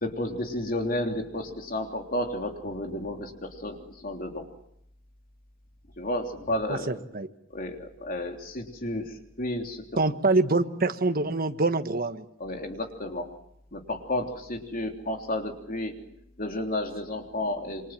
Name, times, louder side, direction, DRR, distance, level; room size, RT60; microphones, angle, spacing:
voice 1, 0.0-4.5 6.0-7.0 7.5-9.8 12.4-13.3 13.7-15.9 16.4-17.9, left 1 dB, 45° left, 3 dB, 3.3 m, -32 dB
voice 2, 6.7-7.3 10.0-12.3, right 3 dB, 50° right, 8 dB, 1.4 m, -25 dB
28.0 x 24.5 x 7.6 m, 0.76 s
head